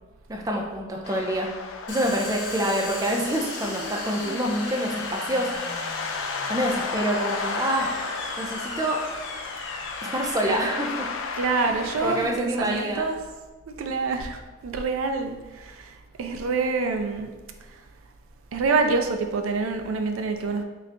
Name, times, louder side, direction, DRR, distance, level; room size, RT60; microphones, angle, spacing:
voice 1, 0.3-1.5 1.9-5.7 6.4-7.9 8.4-9.0 10.0-11.1 11.7-13.1, right 1 dB, 15° right, 0 dB, 0.4 m, -27 dB
sound 1, 1.0-12.2, left 5 dB, 80° left, 0.4 m, -34 dB
Domestic sounds home sounds, 1.9-13.3, left 2 dB, 65° left, 0.8 m, -37 dB
voice 2, 11.4-13.2 13.8-17.3 18.5-20.6, right 4 dB, 85° right, 6 dB, 0.4 m, -26 dB
3.8 x 2.8 x 3.3 m, 1.2 s
head